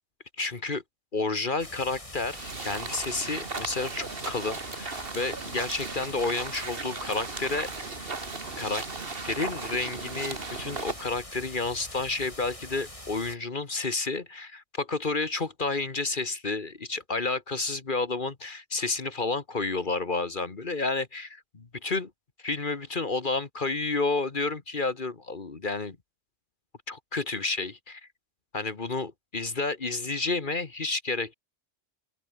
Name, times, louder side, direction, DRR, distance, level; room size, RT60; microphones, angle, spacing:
voice 1, 0.4-0.8 1.1-8.1 8.6-8.8 9.2-22.1 22.4-26.0 26.9-28.0 28.5-31.3, left 3 dB, 45° left, 1.7 m, -30 dB
sound 1, 1.6-13.4, left 1 dB, 25° left, 4.4 m, -44 dB
sound 2, 2.3-11.1, right 4 dB, 50° right, 2.0 m, -37 dB
open air
omnidirectional pair, 1.2 m